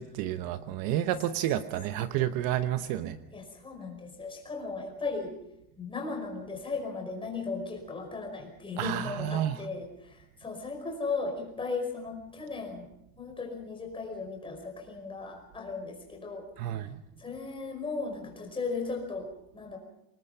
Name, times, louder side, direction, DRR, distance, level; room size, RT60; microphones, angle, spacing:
voice 1, 0.0-3.2 8.8-9.6 16.6-17.0, right 12 dB, 50° right, 1.0 m, -30 dB
voice 2, 3.3-5.4 5.8-12.9 13.2-16.8 17.2-19.3 19.5-19.8, left 4 dB, 10° left, 5.2 m, -36 dB
26.5 x 19.5 x 5.6 m
cardioid pair, 170°, 43 cm